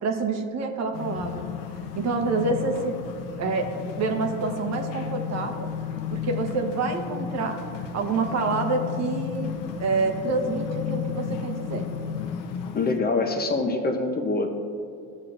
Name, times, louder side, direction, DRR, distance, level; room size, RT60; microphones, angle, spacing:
voice 1, 0.0-1.5 2.0-3.0 3.4-5.7 6.1-7.6 7.9-9.5 9.8-11.8, right 3 dB, 50° right, 3 dB, 1.0 m, -27 dB
sound 1, 0.9-13.0, left 8 dB, 80° left, 0.9 m, -33 dB
voice 2, 12.7-14.5, left 3 dB, 25° left, 4 dB, 0.8 m, -24 dB
14.0 x 6.5 x 2.5 m, 2.5 s
supercardioid pair, 110°, 34 cm